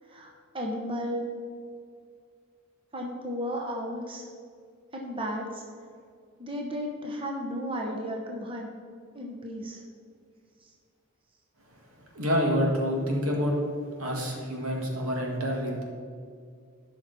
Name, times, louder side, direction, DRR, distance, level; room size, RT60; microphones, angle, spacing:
voice 1, 0.1-1.2 2.9-4.2 4.9-5.6 6.4-8.7 9.1-9.8, equal, 25° right, 0 dB, 0.9 m, -34 dB
voice 2, 12.1-13.6 14.0-15.8, equal, 85° right, -1 dB, 1.9 m, -27 dB
12.0 x 6.0 x 4.1 m, 2.2 s
head